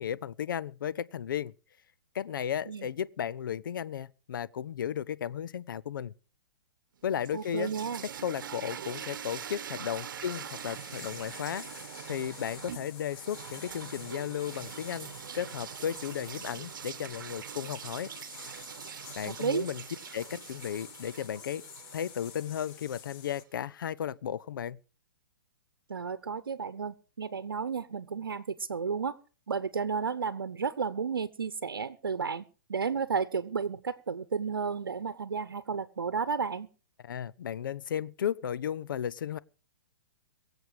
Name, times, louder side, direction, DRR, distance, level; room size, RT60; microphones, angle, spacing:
voice 1, 0.0-1.5 2.1-6.1 7.0-7.7 8.2-11.7 12.1-18.1 19.2-19.8 20.1-21.6 21.9-24.8 37.0-39.4, left 9 dB, 70° left, 0.7 m, -34 dB
sound 1, 7.0-23.1, right 9 dB, 65° right, 1.1 m, -44 dB
voice 2, 7.3-8.0 19.3-19.6 25.9-29.2 29.5-36.7, right 5 dB, 85° right, 0.9 m, -32 dB
sound 2, 10.3-23.4, left 9 dB, 35° left, 1.7 m, -50 dB
22.5 x 7.9 x 4.9 m
hypercardioid pair, 130°, 12 cm